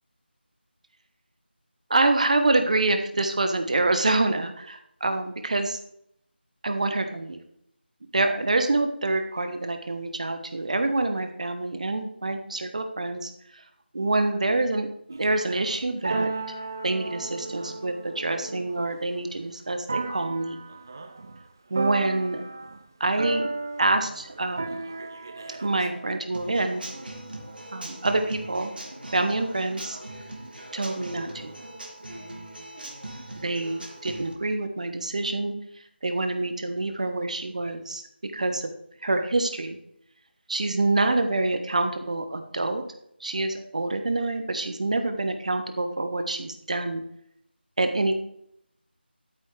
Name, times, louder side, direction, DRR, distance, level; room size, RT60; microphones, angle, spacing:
voice 1, 1.9-5.8 6.6-7.4 8.1-13.6 13.9-16.3 16.8-20.6 21.7-22.4 23.0-23.5 23.8-24.8 25.6-26.8 27.7-28.7 29.1-30.0 30.7-31.5 33.4-35.5 36.0-38.7 39.0-39.8 40.5-42.8 43.2-47.0 47.8-48.2, right 2 dB, 40° right, 7 dB, 1.2 m, -26 dB
sound 1, 15.1-19.4 19.9-21.4 21.7-22.8 23.2-26.2, right 3 dB, 20° right, 0.4 m, -34 dB
Human voice / Acoustic guitar / Drum, 26.3-34.3, right 1 dB, 55° right, 2.3 m, -40 dB
13.0 x 8.8 x 3.4 m, 0.75 s
figure-of-eight pair, 165°, 6 cm